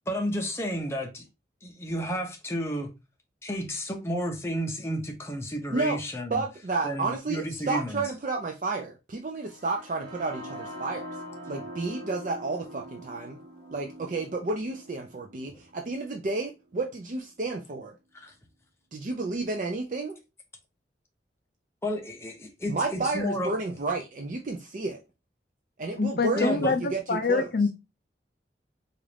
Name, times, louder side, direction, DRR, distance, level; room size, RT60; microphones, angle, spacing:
voice 1, 0.1-1.3 1.6-2.9 3.4-6.4 6.8-8.0 18.1-18.3 21.8-23.5 26.4-26.8, equal, 15° left, 0.6 m, -31 dB
voice 2, 5.7-6.0 6.3-11.0 11.5-13.4 13.7-17.9 18.9-20.2 22.7-25.0 25.8-27.5, right 3 dB, 45° right, 0.4 m, -31 dB
sound 1, 9.5-17.4, equal, 80° right, 1.0 m, -44 dB
voice 3, 26.0-27.7, left 4 dB, 60° left, 0.4 m, -25 dB
3.9 x 2.5 x 3.2 m
head